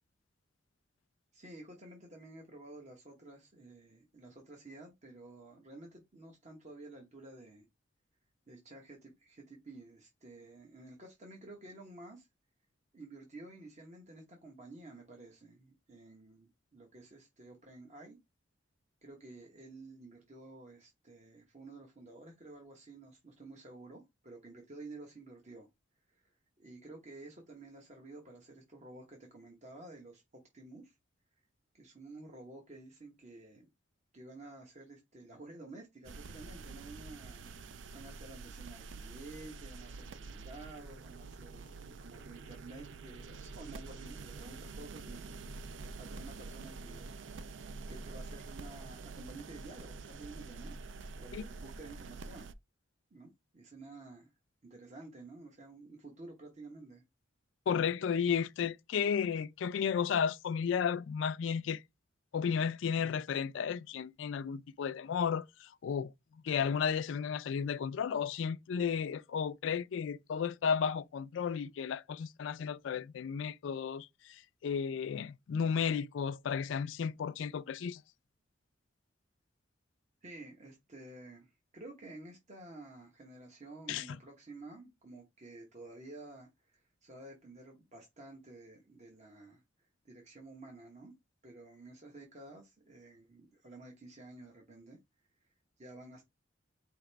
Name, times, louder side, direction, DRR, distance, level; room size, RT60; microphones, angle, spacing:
voice 1, 1.3-7.7 8.5-12.3 12.9-18.2 19.0-25.7 26.1-31.0 31.4-31.5 31.7-33.7 34.1-37.5 37.9-47.1 47.9-50.7 51.1-52.5 53.1-54.3 54.6-57.0 80.2-91.1 91.4-95.0 95.4-96.3, right 2 dB, 40° right, 1.0 m, -52 dB
sound 1, 36.0-52.5, right 3 dB, 70° right, 0.5 m, -47 dB
voice 2, 57.7-61.8 62.3-66.1 66.4-78.0 83.9-84.2, left 7 dB, 75° left, 0.3 m, -33 dB
5.0 x 2.9 x 3.3 m
head